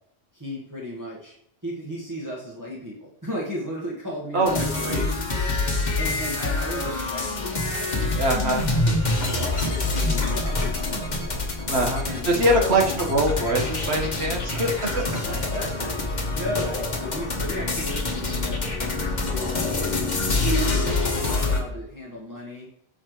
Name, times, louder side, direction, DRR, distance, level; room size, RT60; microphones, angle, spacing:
voice 1, 0.3-1.3 1.6-5.1 5.6-8.0 8.4-11.4 12.0-13.0 15.0-22.7, equal, 20° right, -5 dB, 1.5 m, -35 dB
sound 1, 4.4-21.6, left 2 dB, 45° left, 1.3 m, -26 dB
voice 2, 8.1-8.6 11.7-15.1, right 1 dB, 85° right, 1 dB, 1.8 m, -23 dB
8.6 x 6.4 x 3.1 m, 0.72 s
omnidirectional pair, 1.1 m